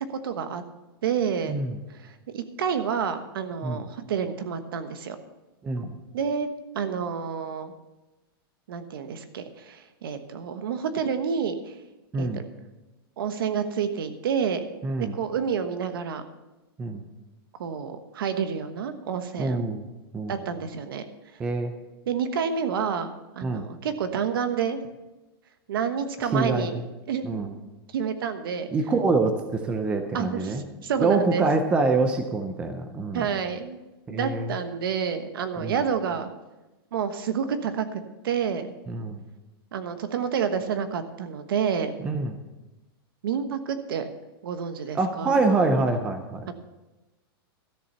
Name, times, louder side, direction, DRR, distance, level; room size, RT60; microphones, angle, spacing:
voice 1, 0.2-0.6 1.0-1.6 2.0-5.2 6.1-6.5 6.7-7.7 8.7-11.7 12.2-12.4 13.2-14.7 15.0-16.2 17.6-19.6 20.3-21.0 22.1-24.8 25.7-26.7 27.1-27.3 27.9-28.7 30.1-31.4 33.1-33.8 34.1-36.3 36.9-38.7 39.7-41.9 43.2-44.0 44.4-45.4 46.5-46.6, right 7 dB, 65° right, 9 dB, 1.2 m, -29 dB
voice 2, 1.5-1.8 3.6-3.8 5.6-6.0 12.1-12.4 14.8-15.1 16.8-17.0 19.4-19.8 20.1-20.4 21.4-21.7 23.4-23.7 26.3-26.8 27.2-27.5 28.7-30.6 31.0-33.3 34.1-34.5 35.6-35.8 38.9-39.2 42.0-42.3 44.9-46.5, right 3 dB, 10° right, 6 dB, 0.5 m, -25 dB
13.0 x 7.0 x 6.8 m, 1.1 s
supercardioid pair, 175°, 13 cm